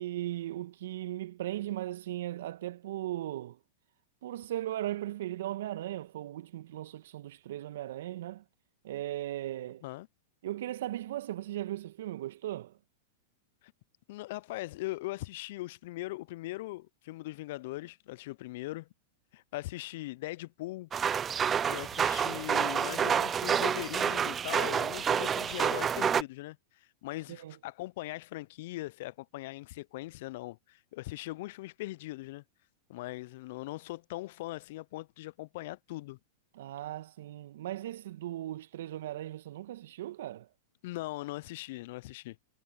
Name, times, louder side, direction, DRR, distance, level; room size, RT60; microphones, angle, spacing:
voice 1, 0.0-3.6 4.2-8.4 8.8-9.8 10.4-12.7 27.3-27.6 36.5-40.5, right 14 dB, 65° right, 1.7 m, -37 dB
voice 2, 14.1-18.9 19.3-20.9 21.7-26.6 27.0-32.4 32.9-36.2 40.8-42.4, left 18 dB, 60° left, 0.6 m, -40 dB
sound 1, 20.9-26.2, right 8 dB, 25° right, 0.5 m, -29 dB
hypercardioid pair, 100°, 0 cm